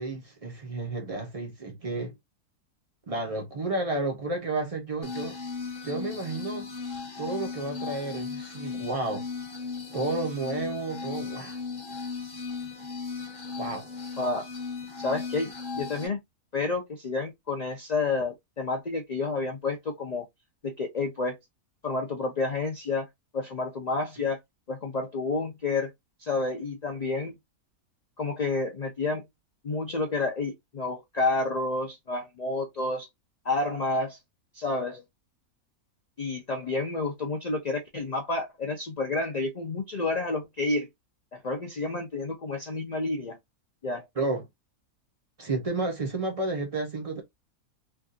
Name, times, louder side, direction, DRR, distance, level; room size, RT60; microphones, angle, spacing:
voice 1, 0.0-2.1 3.1-5.4 5.8-6.7 7.2-9.2 9.9-11.6 13.6-13.9 44.2-44.5 45.4-47.2, right 2 dB, 40° right, 0.5 m, -31 dB
sound 1, 5.0-16.1, left 5 dB, 40° left, 1.1 m, -36 dB
voice 2, 14.2-14.5 15.0-16.2 16.5-20.2 20.6-21.4 21.8-23.1 23.3-24.4 24.7-25.9 26.2-27.4 28.2-29.2 29.6-33.1 33.4-34.2 34.5-35.0 36.2-40.9 41.3-43.3 43.8-44.1, left 3 dB, 70° left, 0.4 m, -30 dB
3.3 x 2.4 x 2.5 m
omnidirectional pair, 1.6 m